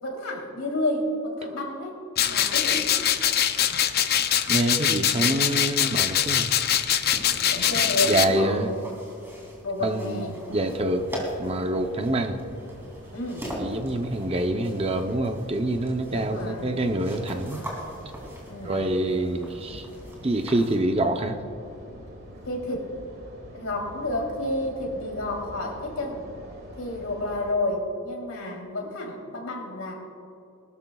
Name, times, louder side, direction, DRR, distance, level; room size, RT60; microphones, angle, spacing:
voice 1, 0.0-2.0 2.3-2.9 7.3-8.8 9.6-10.3 13.1-13.5 16.1-16.7 18.5-18.8 22.4-22.9 23.5-26.2 26.8-29.9, left 1 dB, 85° left, -1 dB, 3.2 m, -30 dB
sound 1, 2.2-8.2, left 10 dB, 45° left, 0.5 m, -23 dB
voice 2, 4.5-6.5 8.1-8.8 9.8-11.1 11.4-12.4 13.6-17.6 18.6-19.9 20.2-21.4, right 1 dB, 25° right, 6 dB, 0.6 m, -26 dB
sound 2, 6.1-20.8, equal, 10° right, 2.7 m, -41 dB
sound 3, 10.5-27.5, equal, 45° right, 1.8 m, -45 dB
20.5 x 13.0 x 2.3 m, 2.7 s
head